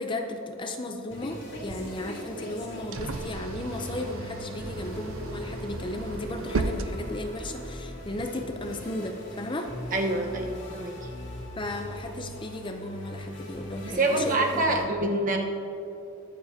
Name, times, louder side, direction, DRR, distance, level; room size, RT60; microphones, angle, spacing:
voice 1, 0.0-9.7 11.6-15.1, left 1 dB, 25° left, 5 dB, 0.6 m, -35 dB
sound 1, 1.1-14.8, equal, 60° left, 2.0 m, -41 dB
sound 2, 1.4-7.7, right 2 dB, 80° right, 0.6 m, -36 dB
voice 2, 9.9-11.0 13.8-15.4, right 2 dB, 40° right, 1 dB, 1.1 m, -26 dB
22.0 x 7.4 x 2.8 m, 2.9 s
head